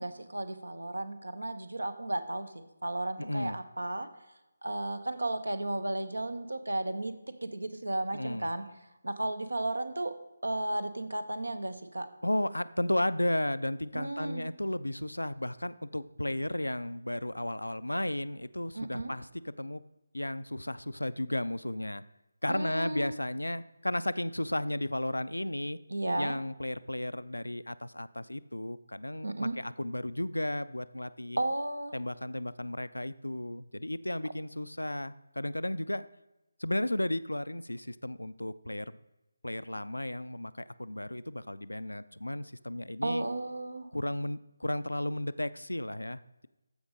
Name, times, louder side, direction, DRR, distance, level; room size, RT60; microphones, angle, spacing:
voice 1, 0.0-4.1 4.6-7.1 7.4-8.7 9.0-10.1 10.4-12.1 13.9-14.4 18.7-19.1 22.5-23.2 25.9-26.4 29.2-29.6 31.4-32.0 43.0-43.9, right 1 dB, 70° right, 11 dB, 0.9 m, -34 dB
voice 2, 3.2-3.6 8.1-8.5 12.2-19.8 20.1-22.0 22.4-25.8 26.2-31.4 31.9-36.1 36.6-39.0 39.4-43.2 43.9-46.5, left 1 dB, 80° left, 15 dB, 0.4 m, -34 dB
14.0 x 5.2 x 3.9 m, 0.99 s
figure-of-eight pair, 155°, 0 cm